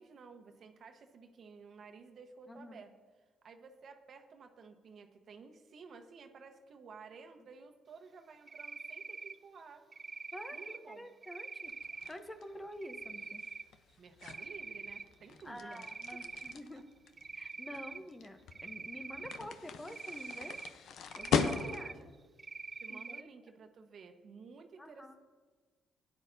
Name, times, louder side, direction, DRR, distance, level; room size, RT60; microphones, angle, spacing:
voice 1, 0.0-9.9 10.5-11.1 14.0-16.2 16.7-16.8 17.7-17.8 21.5-22.0 22.8-25.2, right 5 dB, 55° right, 5 dB, 1.1 m, -54 dB
voice 2, 2.5-2.8 10.3-11.7 12.1-13.4 15.4-16.8 17.3-20.6 21.2-22.0 22.9-23.3 24.8-25.1, left 1 dB, 15° left, 7 dB, 0.8 m, -48 dB
Cricket, 8.5-9.4 9.9-10.8 11.2-12.1 12.8-13.6 14.1-15.0 15.4-16.6 17.2-18.0 18.5-19.4 19.9-20.7 21.1-21.9 22.4-23.2, right 4 dB, 35° right, 0.3 m, -45 dB
sound 1, 11.7-22.1, left 6 dB, 75° left, 0.7 m, -39 dB
16.0 x 10.0 x 2.7 m, 1.4 s
cardioid pair, 90°, 0 cm